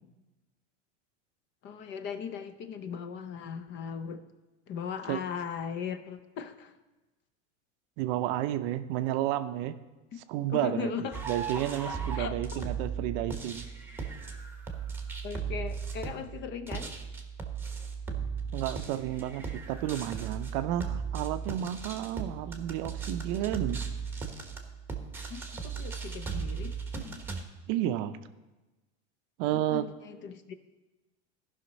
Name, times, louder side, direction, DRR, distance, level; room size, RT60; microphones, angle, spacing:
voice 1, 1.6-4.3 4.7-6.8 10.1-10.2 10.5-11.2 11.8-12.6 15.2-16.9 25.3-26.8 29.4-30.5, left 7 dB, 30° left, 10 dB, 0.6 m, -38 dB
voice 2, 8.0-9.8 10.3-10.9 11.3-13.7 18.5-23.8 27.7-28.2 29.4-29.9, right 13 dB, 50° right, 11 dB, 0.6 m, -31 dB
sound 1, 11.1-27.4, right 6 dB, 5° right, 1.0 m, -37 dB
14.0 x 5.7 x 4.0 m, 1.1 s
supercardioid pair, 130°, 36 cm